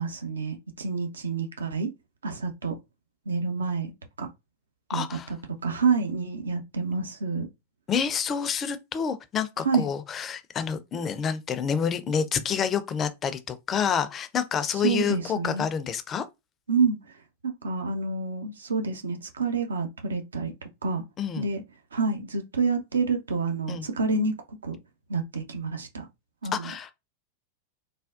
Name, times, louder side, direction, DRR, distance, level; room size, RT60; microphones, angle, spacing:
voice 1, 0.0-1.9 2.2-2.8 3.3-3.9 4.2-4.3 4.9-5.1 5.6-7.5 9.6-9.8 14.8-15.6 16.7-17.0 17.4-21.0 21.4-21.6 21.9-24.3 24.6-24.8 25.1-26.1 26.4-26.7, right 4 dB, 70° right, 0.5 m, -28 dB
voice 2, 4.9-5.3 7.9-16.2 21.2-21.5 23.7-23.9 26.5-26.9, left 7 dB, 25° left, 0.4 m, -28 dB
3.4 x 2.2 x 2.4 m
figure-of-eight pair, 90°, 0 cm